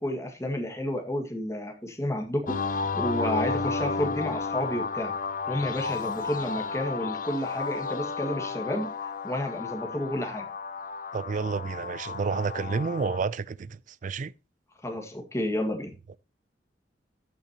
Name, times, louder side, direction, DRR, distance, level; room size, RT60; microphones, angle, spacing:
voice 1, 0.0-5.1 5.5-8.9 9.2-10.5 14.8-15.9, left 1 dB, 15° left, 1.8 m, -31 dB
sound 1, 2.5-13.2, left 4 dB, 45° left, 0.8 m, -32 dB
voice 2, 11.1-14.3, right 4 dB, 45° right, 0.4 m, -30 dB
14.5 x 6.1 x 2.9 m
head